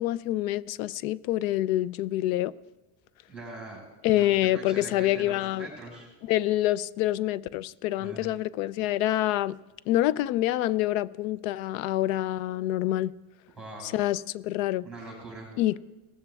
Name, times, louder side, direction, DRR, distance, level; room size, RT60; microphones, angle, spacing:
voice 1, 0.0-2.5 4.0-5.7 6.3-9.6 9.9-13.1 13.8-14.9 15.6-15.8, left 14 dB, 70° left, 0.5 m, -26 dB
voice 2, 3.3-3.8 4.1-4.3 4.5-6.1 8.0-8.3 13.6-14.1 14.8-15.5, right 2 dB, ahead, 5.3 m, -42 dB
19.5 x 14.5 x 2.3 m
cardioid pair, 160°, 43 cm